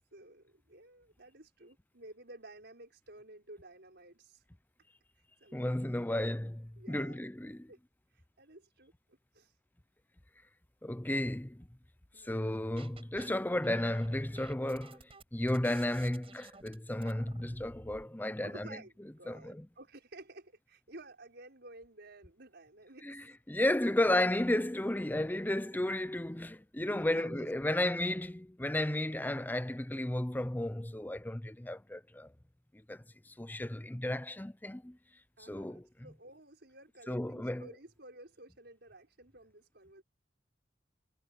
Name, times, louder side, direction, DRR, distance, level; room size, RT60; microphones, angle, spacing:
voice 1, 0.1-4.4 5.2-5.8 6.8-7.2 7.7-7.8 8.1-9.5 12.1-12.6 18.4-23.3 26.9-28.2 35.4-40.0, right 2 dB, 65° right, 6.4 m, -53 dB
voice 2, 5.5-7.7 10.8-11.7 12.2-18.8 19.3-19.6 23.0-32.3 32.7-35.0 35.4-35.9 37.1-37.7, left 1 dB, 10° left, 0.7 m, -33 dB
sound 1, 12.4-13.3 13.6-18.0, right 3 dB, 30° right, 7.7 m, -54 dB
head